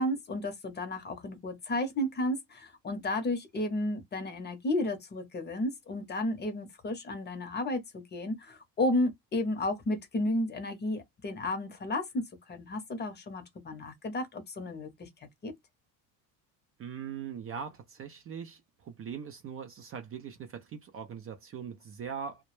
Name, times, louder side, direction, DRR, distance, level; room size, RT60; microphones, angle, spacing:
voice 1, 0.0-12.2 12.5-15.1 15.4-15.5, left 1 dB, 25° left, 0.7 m, -32 dB
voice 2, 16.8-18.6 18.9-22.4, right 7 dB, 35° right, 0.4 m, -41 dB
2.1 x 2.0 x 3.0 m
cardioid pair, 125°, 40 cm